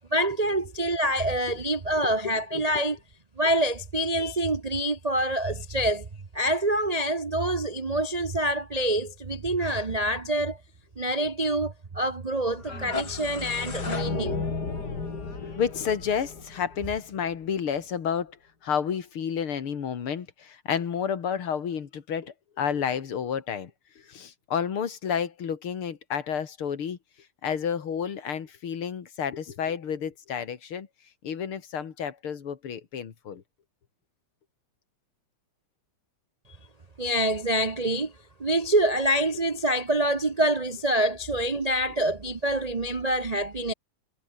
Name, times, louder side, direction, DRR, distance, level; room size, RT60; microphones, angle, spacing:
voice 1, 0.1-3.0 3.4-6.1 6.3-10.6 11.0-14.4 37.0-38.1 38.4-43.7, right 1 dB, 40° right, 0.5 m, -26 dB
voice 2, 2.0-2.6 15.4-18.4 18.6-23.7 24.0-27.0 27.4-30.9 31.2-33.4, left 7 dB, 80° left, 2.9 m, -30 dB
sound 1, 12.5-17.4, left 4 dB, 50° left, 3.8 m, -33 dB
omnidirectional pair, 2.3 m